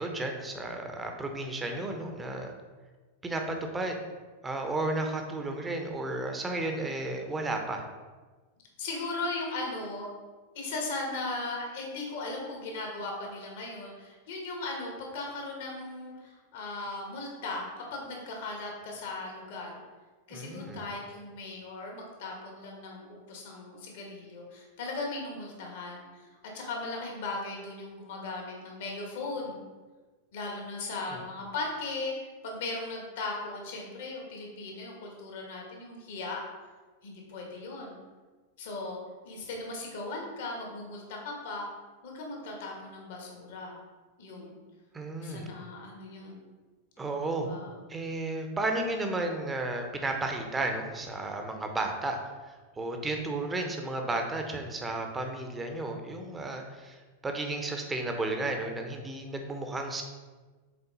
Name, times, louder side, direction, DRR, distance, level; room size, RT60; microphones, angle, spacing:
voice 1, 0.0-2.5 3.2-4.0 4.4-7.8 20.3-20.9 31.1-31.2 44.9-45.5 47.0-47.5 47.9-52.2 52.5-60.0, right 2 dB, 15° right, 3 dB, 0.9 m, -33 dB
voice 2, 8.8-10.1 10.5-19.8 20.3-26.3 26.5-29.6 30.3-32.1 32.4-36.4 37.0-38.0 38.6-41.6 42.0-43.8 44.2-44.6 45.2-46.5 47.4-47.7, left 3 dB, 55° left, 0 dB, 1.7 m, -38 dB
6.8 x 4.2 x 4.0 m, 1.3 s
figure-of-eight pair, 90°, 0 cm